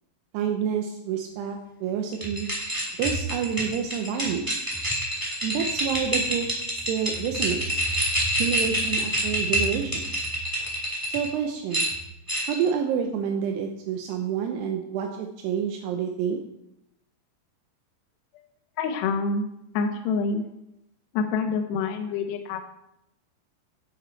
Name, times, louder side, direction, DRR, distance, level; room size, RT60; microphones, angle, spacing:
voice 1, 0.3-2.5 3.0-4.6 5.4-6.4 6.7-7.9 8.4-10.1 11.1-11.9 12.5-16.4, right 7 dB, 80° right, 3 dB, 2.8 m, -28 dB
sound 1, 2.1-11.3 11.7-12.7, equal, 5° right, 2.2 m, -27 dB
voice 2, 18.8-19.5 19.7-20.4 21.1-22.7, left 4 dB, 85° left, 5 dB, 3.0 m, -26 dB
9.6 x 8.9 x 4.5 m, 0.83 s
omnidirectional pair, 4.9 m